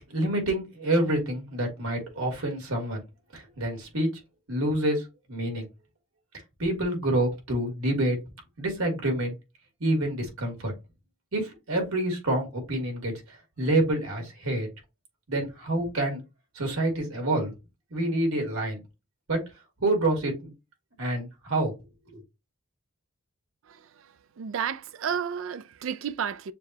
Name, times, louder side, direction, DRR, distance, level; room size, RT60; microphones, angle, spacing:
voice 1, 0.1-3.0 3.3-4.1 4.5-5.0 5.3-5.7 6.6-8.2 8.6-9.3 9.8-10.7 11.3-13.1 13.6-14.7 15.3-16.2 16.6-17.5 17.9-18.8 19.3-19.4 19.8-20.5 21.0-21.7 22.1-22.2, right 1 dB, 80° right, 1.9 m, -27 dB
voice 2, 24.4-26.5, right 7 dB, 60° right, 0.4 m, -31 dB
6.7 x 2.3 x 2.7 m
head